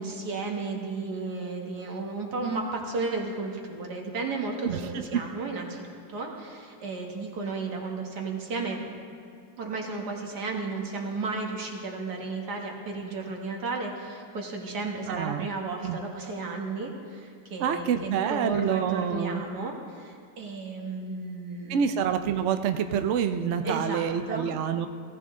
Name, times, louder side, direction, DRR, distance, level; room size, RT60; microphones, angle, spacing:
voice 1, 0.0-8.8 9.6-21.8 23.6-24.5, right 3 dB, 60° right, 1 dB, 2.1 m, -33 dB
voice 2, 4.6-5.2 15.1-15.5 15.8-16.0 17.6-19.4 21.7-24.9, right 8 dB, 80° right, 8 dB, 0.6 m, -27 dB
17.0 x 13.5 x 3.7 m, 2.4 s
omnidirectional pair, 2.0 m